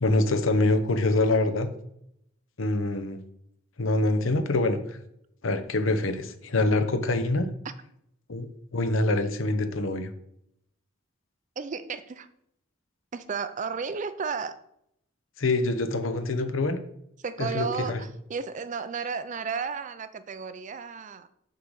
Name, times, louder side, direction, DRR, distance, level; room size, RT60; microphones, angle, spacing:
voice 1, 0.0-1.7 2.6-3.2 3.8-5.0 5.4-7.5 8.3-10.1 15.4-16.8 17.4-18.0, left 2 dB, 70° left, 10 dB, 0.8 m, -25 dB
voice 2, 11.6-12.3 13.1-14.6 17.2-21.3, right 5 dB, 35° right, 12 dB, 0.4 m, -33 dB
6.5 x 3.9 x 6.3 m, 0.75 s
head